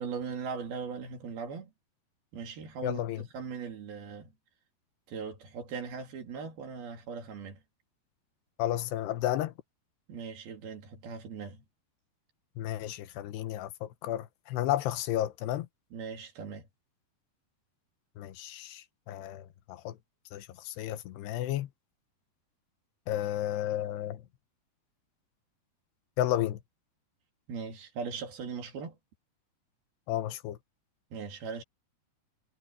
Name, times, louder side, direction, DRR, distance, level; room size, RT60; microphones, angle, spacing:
voice 1, 0.0-1.7 2.3-3.0 3.3-4.3 5.1-7.6 10.1-11.6 15.9-16.7 27.5-29.0 31.1-31.6, right 5 dB, 65° right, 4.8 m, -39 dB
voice 2, 2.8-3.3 8.6-9.5 12.6-15.7 18.2-20.0 20.3-21.7 23.1-24.2 26.2-26.6 30.1-30.6, left 13 dB, 85° left, 3.1 m, -32 dB
omnidirectional pair, 4.7 m